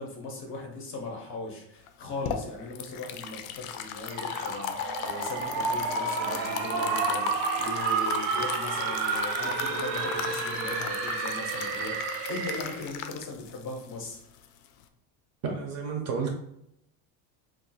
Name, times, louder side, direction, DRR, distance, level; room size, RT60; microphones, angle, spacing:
voice 1, 0.0-14.2, left 2 dB, 30° left, 0 dB, 0.5 m, -39 dB
sound 1, 1.9-14.8, left 8 dB, 85° left, 0.5 m, -37 dB
sound 2, 4.0-12.9, right 5 dB, 90° right, 0.7 m, -31 dB
voice 2, 15.4-16.3, right 5 dB, 40° right, 2 dB, 0.4 m, -31 dB
2.4 x 2.3 x 3.9 m, 0.78 s
cardioid pair, 175°, 42 cm